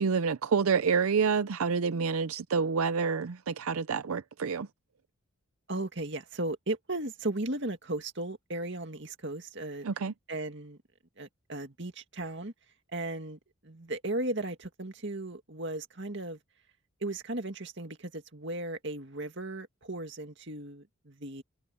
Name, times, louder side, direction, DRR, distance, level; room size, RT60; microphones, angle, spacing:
voice 1, 0.0-4.7 9.8-10.1, right 5 dB, 80° right, 0.5 m, -28 dB
voice 2, 5.7-9.9 10.3-10.8 11.2-12.5 12.9-16.4 17.0-21.4, right 2 dB, 55° right, 2.2 m, -36 dB
head